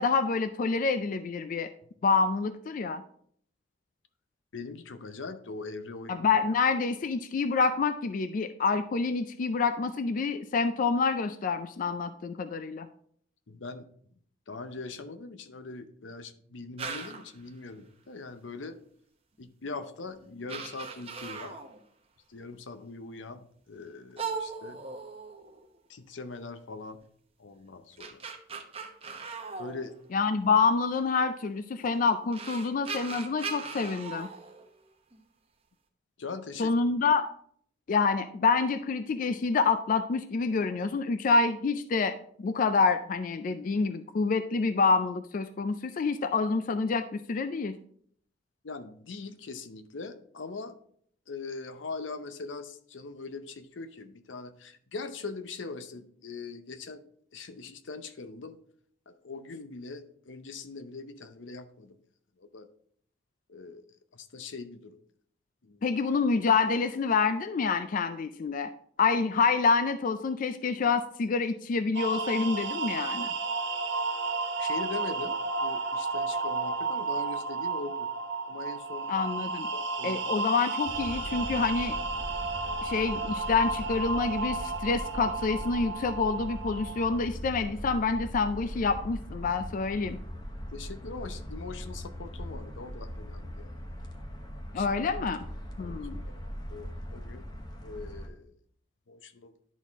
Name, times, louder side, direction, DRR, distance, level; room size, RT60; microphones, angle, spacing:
voice 1, 0.0-1.7 2.0-3.0 6.1-12.9 30.1-34.3 36.6-37.3 37.9-47.8 65.8-68.7 69.0-73.3 79.1-79.7 80.0-82.0 82.8-90.2 94.7-95.5 95.8-96.2, left 4 dB, 45° left, 11 dB, 0.3 m, -27 dB
voice 2, 4.5-6.2 13.5-13.8 14.5-18.8 19.4-21.6 22.3-24.8 25.9-27.0 27.4-28.2 29.6-29.9 36.2-36.7 48.6-50.7 51.3-57.0 57.3-58.6 59.1-62.0 62.4-62.7 63.5-63.8 64.1-65.0 65.6-65.9 74.6-78.1 78.5-79.1 79.7-80.2 90.7-93.7 94.7-94.9 95.8-97.4 97.8-98.6 99.1-99.5, left 3 dB, 85° left, 10 dB, 0.7 m, -41 dB
sound 1, 16.8-17.4 19.4-19.5 20.2-20.3 20.5-21.8 24.2-25.8 27.7-30.4 31.8-31.9 32.3-35.2, right 5 dB, 30° right, 0.8 m, -39 dB
sound 2, 71.9-87.3, right 3 dB, 65° right, 1.0 m, -33 dB
sound 3, 80.8-98.3, equal, 20° left, 0.9 m, -40 dB
11.0 x 4.1 x 3.5 m, 0.62 s
head